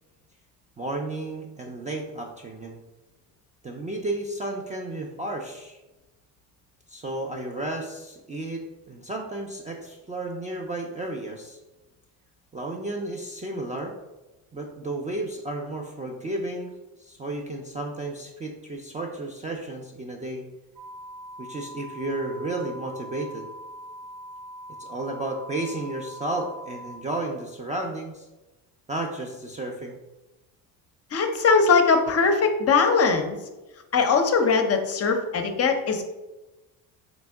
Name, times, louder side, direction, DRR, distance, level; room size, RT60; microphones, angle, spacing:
voice 1, 0.8-2.8 3.6-5.8 6.9-11.6 12.5-13.9 14.5-16.7 17.0-20.4 21.4-23.5 24.8-28.3 28.9-30.0, right 2 dB, 20° right, 0 dB, 0.3 m, -33 dB
sound 1, 20.8-27.0, equal, 80° right, 1.1 m, -42 dB
voice 2, 31.1-33.4 33.9-36.0, left 4 dB, 35° left, 6 dB, 0.5 m, -21 dB
3.4 x 3.0 x 3.4 m, 1.1 s
supercardioid pair, 85°, 42 cm